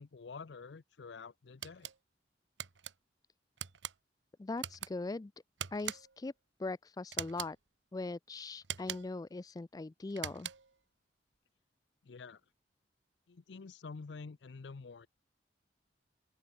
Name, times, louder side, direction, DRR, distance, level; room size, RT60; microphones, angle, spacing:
voice 1, 0.0-1.9 12.0-12.4 13.3-15.1, left 4 dB, 70° left, 0.6 m, -48 dB
sound 1, 1.6-2.0 2.6-2.9 3.6-4.0 4.6-4.9 5.6-6.2 7.1-7.6 8.6-9.2 10.1-10.8, right 10 dB, 90° right, 1.3 m, -42 dB
voice 2, 4.4-5.3 5.7-6.3 6.6-7.6 7.9-10.5, left 3 dB, 20° left, 0.3 m, -40 dB
open air
head